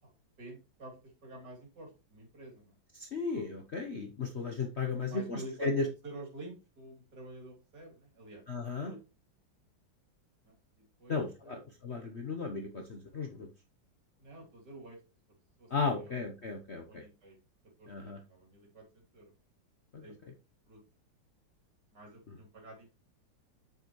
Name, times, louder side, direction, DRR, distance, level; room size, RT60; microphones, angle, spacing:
voice 1, 0.0-2.8 5.0-8.4 8.8-9.0 10.4-11.6 14.2-15.0 15.6-16.1 16.8-17.4 17.8-19.3 20.0-20.2 20.7-20.8 21.9-22.9, right 2 dB, 60° right, 1 dB, 3.7 m, -49 dB
voice 2, 2.9-5.8 8.5-8.9 11.1-13.5 15.7-17.0 17.9-18.2 19.9-20.0, left 4 dB, 45° left, 3 dB, 1.0 m, -35 dB
7.9 x 6.9 x 3.1 m, 0.29 s
omnidirectional pair, 2.1 m